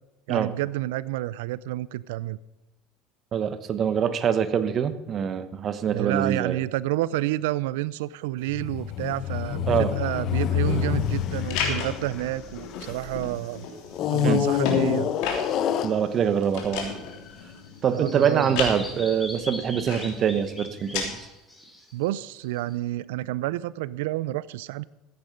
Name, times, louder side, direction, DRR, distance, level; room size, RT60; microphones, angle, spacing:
voice 1, 0.3-2.4 5.9-13.7 14.1-15.1 17.9-18.6 21.9-24.8, right 16 dB, 90° right, 20 dB, 0.4 m, -29 dB
voice 2, 3.3-6.6 9.7-9.9 14.2-14.4 15.8-16.9 17.8-21.2, right 8 dB, 40° right, 12 dB, 1.1 m, -24 dB
sound 1, 8.5-13.2 13.9-16.5 17.1-17.3, left 10 dB, 50° left, 0.8 m, -27 dB
sound 2, 11.0-21.1, left 5 dB, 75° left, 3.2 m, -35 dB
Bird vocalization bird call bird song, 17.0-22.7, left 1 dB, 10° left, 2.6 m, -42 dB
14.5 x 9.4 x 5.2 m, 1.0 s
supercardioid pair, 110°, 0 cm